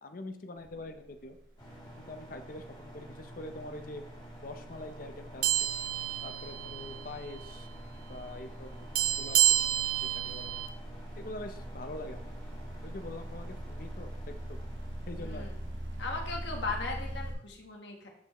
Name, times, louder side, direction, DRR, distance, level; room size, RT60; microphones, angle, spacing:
voice 1, 0.0-1.4 2.0-4.0 4.4-5.7 6.2-7.7 8.1-8.9 9.2-9.8 10.2-10.5 11.2-12.3 12.5-14.6 15.1-15.5, left 2 dB, 45° left, 7 dB, 0.6 m, -44 dB
sound 1, 0.6-0.9 1.2-17.4, right 1 dB, 85° right, 1.0 m, -43 dB
sound 2, 1.6-16.7, right 1 dB, 30° left, 2.2 m, -50 dB
sound 3, 5.4-7.1 7.4-7.6 9.0-10.7, right 13 dB, 45° right, 0.4 m, -29 dB
voice 2, 15.2-15.6 16.0-18.1, left 3 dB, 65° left, 1 dB, 1.4 m, -38 dB
9.3 x 4.6 x 3.0 m, 0.70 s
head